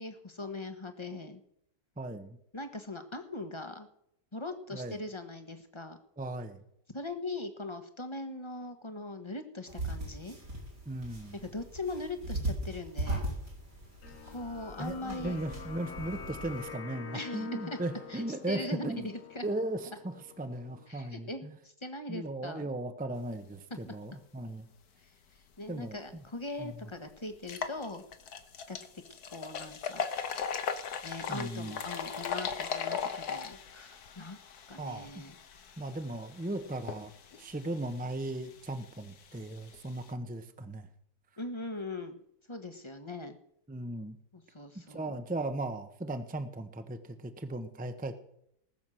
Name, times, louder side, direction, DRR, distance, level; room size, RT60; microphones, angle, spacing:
voice 1, 0.0-1.4 2.5-3.9 4.3-6.0 6.9-10.4 11.4-13.2 14.3-15.4 17.1-17.8 18.1-19.4 19.9-20.0 20.9-22.7 23.7-23.9 25.0-28.0 28.7-28.8 29.1-30.0 31.0-34.4 34.7-35.3 41.4-42.2 42.5-43.4 44.3-45.2, left 2 dB, 20° left, 8 dB, 1.2 m, -41 dB
voice 2, 2.0-2.4 4.7-5.0 6.2-6.6 10.9-11.4 14.8-19.1 19.4-21.5 22.1-24.7 25.7-26.2 26.6-26.7 31.3-31.8 34.8-35.2 35.8-37.1 37.4-40.9 43.7-44.2 44.9-48.2, right 1 dB, 5° right, 9 dB, 0.8 m, -37 dB
sound 1, 9.7-16.6, right 2 dB, 90° right, 5.4 m, -38 dB
sound 2, 14.0-20.9, left 7 dB, 55° left, 1.3 m, -47 dB
sound 3, 26.1-26.2 26.6-26.7 27.3-40.1, left 7 dB, 70° left, 1.6 m, -39 dB
19.5 x 7.3 x 6.3 m, 0.75 s
omnidirectional pair, 1.7 m